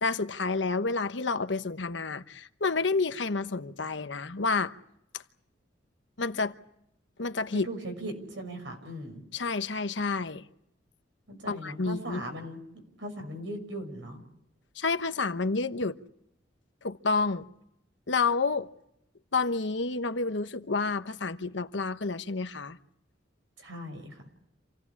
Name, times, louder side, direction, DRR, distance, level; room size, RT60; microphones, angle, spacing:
voice 1, 0.0-4.7 6.2-6.5 7.2-7.7 9.3-10.4 11.5-12.2 14.7-16.0 16.8-17.5 18.1-18.7 19.3-22.8, left 4 dB, 70° left, 1.1 m, -29 dB
voice 2, 7.5-9.2 11.3-12.6 13.0-14.2 23.6-24.3, right 1 dB, 85° right, 6.4 m, -39 dB
27.5 x 17.0 x 8.4 m
head